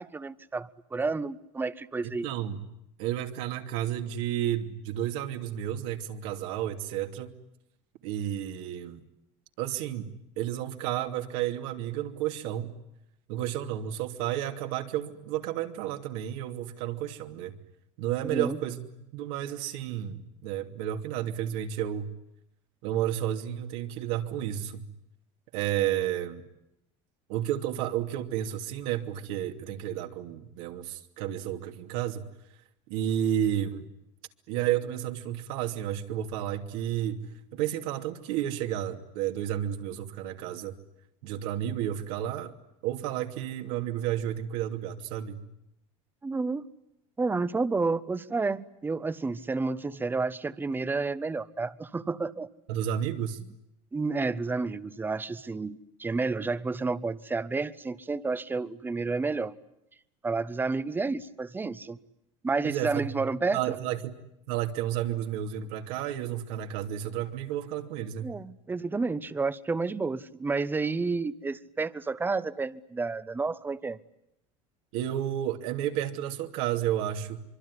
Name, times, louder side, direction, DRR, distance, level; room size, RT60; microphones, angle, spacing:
voice 1, 0.0-2.3 18.2-18.6 46.2-46.7 47.2-52.5 53.9-59.5 60.2-62.0 62.4-63.6 68.2-74.0, right 3 dB, 15° right, 15 dB, 1.1 m, -30 dB
voice 2, 2.0-2.6 3.0-7.3 8.0-9.0 9.6-12.7 13.3-17.5 18.0-22.1 22.8-24.9 25.5-26.4 27.3-32.2 32.9-33.9 34.5-40.7 41.2-42.5 42.8-45.4 52.7-53.4 62.6-64.1 64.5-68.3 74.9-77.4, right 11 dB, 75° right, 6 dB, 2.8 m, -31 dB
25.0 x 24.0 x 9.9 m, 0.83 s
supercardioid pair, 130°, 16 cm